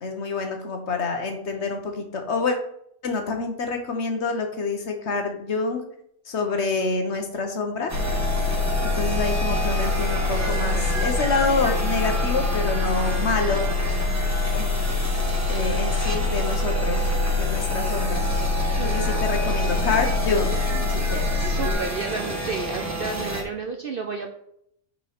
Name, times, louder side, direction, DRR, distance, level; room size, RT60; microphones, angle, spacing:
voice 1, 0.0-2.6 3.0-5.8 6.3-7.9 8.8-13.6 14.5-14.7 15.5-18.3 18.8-21.5, left 4 dB, 55° left, 4 dB, 1.2 m, -27 dB
sound 1, 7.9-21.7, left 3 dB, 75° left, 2.2 m, -25 dB
sound 2, 7.9-23.4, right 1 dB, 15° right, 1.0 m, -30 dB
voice 2, 21.4-24.3, right 4 dB, 55° right, 4 dB, 0.7 m, -31 dB
5.9 x 4.6 x 5.7 m, 0.71 s
omnidirectional pair, 1.5 m